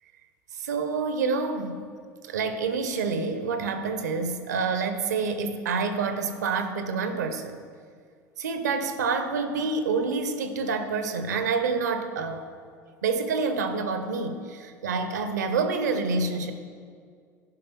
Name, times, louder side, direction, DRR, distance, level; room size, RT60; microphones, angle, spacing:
voice 1, 0.6-1.8 2.2-7.6 8.4-12.4 13.0-16.5, right 4 dB, 75° right, 8 dB, 0.7 m, -27 dB
11.5 x 5.3 x 4.4 m, 2.1 s
figure-of-eight pair, 70°, 9 cm